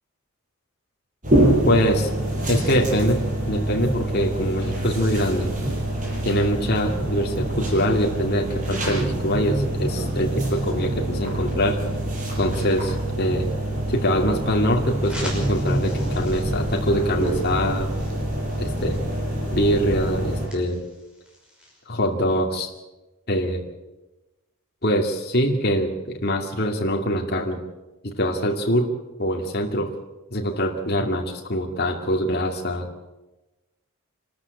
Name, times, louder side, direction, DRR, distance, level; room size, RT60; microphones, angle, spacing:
sound 1, 1.2-20.5, right 1 dB, 35° right, 6.4 m, -25 dB
voice 1, 1.6-2.1 2.5-5.5 6.2-11.8 12.4-13.5 13.9-18.0 18.6-19.0 19.5-20.8 21.9-22.7 23.3-23.6 24.8-27.6 28.0-28.9 29.2-29.9 30.3-32.9, equal, 45° left, 1 dB, 2.5 m, -24 dB
sound 2, 15.0-21.8, left 1 dB, 5° right, 6.2 m, -44 dB
26.0 x 13.5 x 8.4 m, 1.1 s
head